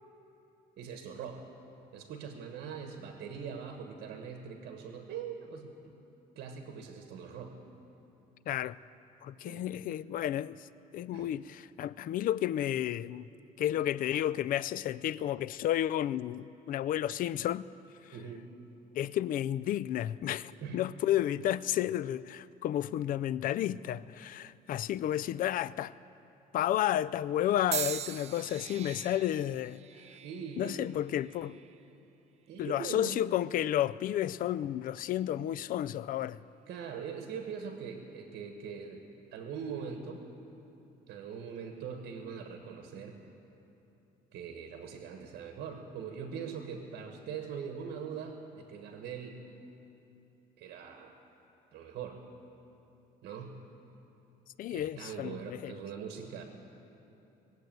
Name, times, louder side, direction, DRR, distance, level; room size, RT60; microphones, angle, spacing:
voice 1, 0.8-1.4 1.9-5.9 6.3-7.6 9.4-9.6 11.1-11.3 18.1-18.5 20.6-20.8 30.2-30.9 32.5-33.2 36.7-39.0 39.3-40.2 41.1-43.2 44.3-49.4 50.6-51.2 51.7-52.3 53.2-53.6 54.7-56.4, right 6 dB, 70° right, 1.4 m, -42 dB
voice 2, 8.5-8.8 9.2-10.7 10.9-13.3 13.6-17.7 18.0-18.1 19.0-25.9 26.5-29.8 30.6-31.6 32.6-36.4 54.6-55.8, left 12 dB, 55° left, 0.4 m, -32 dB
sound 1, 27.7-31.8 32.6-33.0 33.9-34.1, right 9 dB, 40° right, 0.5 m, -41 dB
20.0 x 8.0 x 9.1 m
cardioid pair, 110°, 17 cm